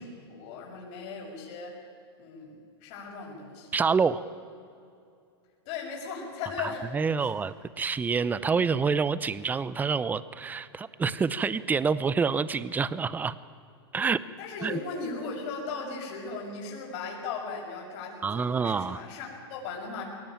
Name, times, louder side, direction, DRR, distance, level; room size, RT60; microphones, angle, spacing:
voice 1, 0.0-1.8 2.2-3.7 5.6-6.9 7.2-7.3 14.4-20.1, left 4 dB, 50° left, -1 dB, 6.6 m, -37 dB
voice 2, 3.7-4.2 6.6-13.4 13.9-14.2 14.6-14.8 18.2-19.0, right 5 dB, 10° right, 17 dB, 0.7 m, -27 dB
22.0 x 18.0 x 8.9 m, 2.5 s
hypercardioid pair, 130°, 14 cm